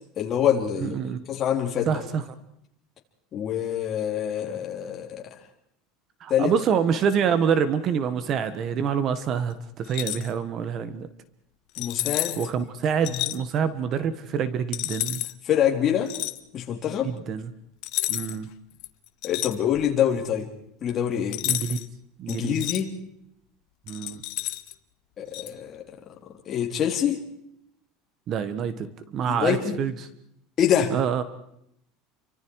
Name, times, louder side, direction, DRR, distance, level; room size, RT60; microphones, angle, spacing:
voice 1, 0.2-1.0 1.3-2.0 3.3-5.2 6.3-6.5 11.8-12.4 13.1-13.2 15.5-16.1 16.5-17.1 19.2-20.5 20.8-21.4 22.3-22.9 25.2-26.1 26.5-27.2 29.3-29.8 30.6-30.9, left 9 dB, 30° left, 1 dB, 3.5 m, -25 dB
voice 2, 0.8-1.2 1.9-2.2 6.2-11.1 12.4-15.2 17.0-17.5 18.1-18.5 21.4-21.9 22.2-22.6 23.9-24.2 28.3-29.9 30.9-31.2, right 7 dB, 35° right, 13 dB, 1.4 m, -26 dB
sound 1, 9.8-10.3 11.7-12.5 13.0-13.4 14.7-15.3 16.1-16.4 17.8-18.4 18.8-20.0 21.3-21.9 22.3-22.8 23.9-24.7 25.3-25.5, left 19 dB, 55° left, 1.2 m, -30 dB
30.0 x 24.5 x 4.8 m, 0.76 s
supercardioid pair, 155°, 0 cm